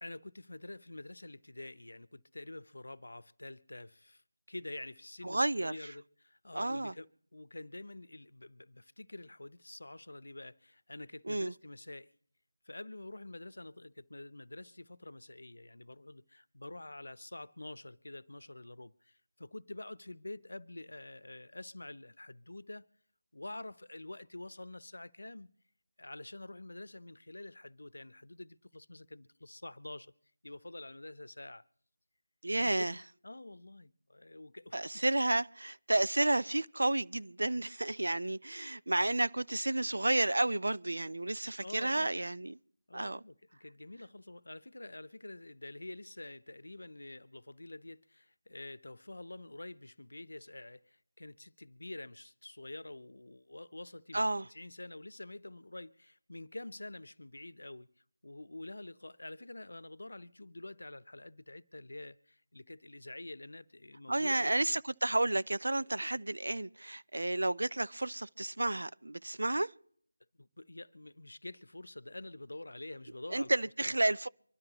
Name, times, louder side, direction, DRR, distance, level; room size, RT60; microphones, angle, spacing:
voice 1, 0.0-4.2 4.5-12.1 12.6-22.9 23.3-25.5 26.0-30.1 30.4-31.7 32.6-34.8 41.6-42.1 42.9-54.2 54.5-57.9 58.2-64.8 70.4-73.5 73.8-74.0, left 2 dB, 75° left, 0.7 m, -47 dB
voice 2, 5.2-5.9 6.5-6.9 11.3-11.5 32.4-33.0 34.7-42.6 42.9-43.2 54.1-54.5 64.1-69.7 73.3-74.3, right 2 dB, 75° right, 0.5 m, -31 dB
25.0 x 12.5 x 3.0 m
figure-of-eight pair, 170°, 0 cm